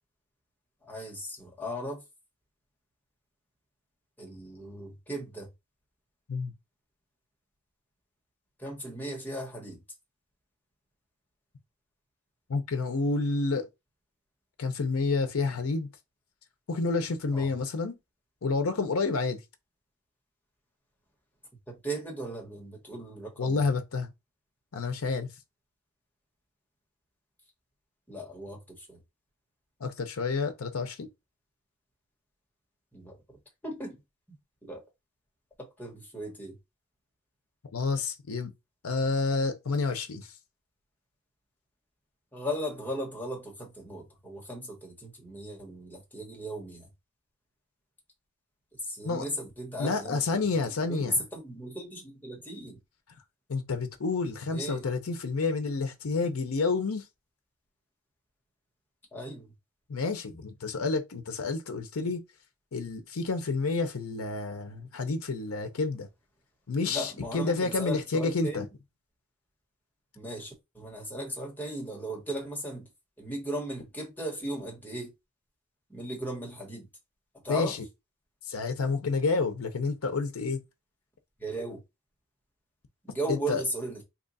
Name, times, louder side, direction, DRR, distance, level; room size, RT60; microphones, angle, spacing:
voice 1, 0.8-2.0 4.2-5.5 8.6-9.8 17.3-17.5 21.7-23.6 28.1-29.0 32.9-33.4 33.6-34.0 34.6-34.8 35.6-36.6 42.3-46.9 48.8-50.5 50.9-52.8 54.5-54.9 59.1-59.5 66.8-68.7 70.1-72.9 73.2-75.1 75.9-76.9 77.4-77.8 81.4-81.8 83.0-84.0, right 1 dB, 10° left, 1.3 m, -37 dB
voice 2, 12.5-13.7 14.6-15.9 16.7-18.0 18.4-19.4 23.4-24.1 24.7-25.3 29.8-31.1 37.7-38.5 38.8-40.3 49.0-49.2 49.8-51.2 53.5-57.0 59.9-62.2 62.7-66.1 66.7-68.7 77.5-77.9 78.5-80.6 83.3-83.6, left 4 dB, 85° left, 0.6 m, -29 dB
2.9 x 2.4 x 4.0 m
head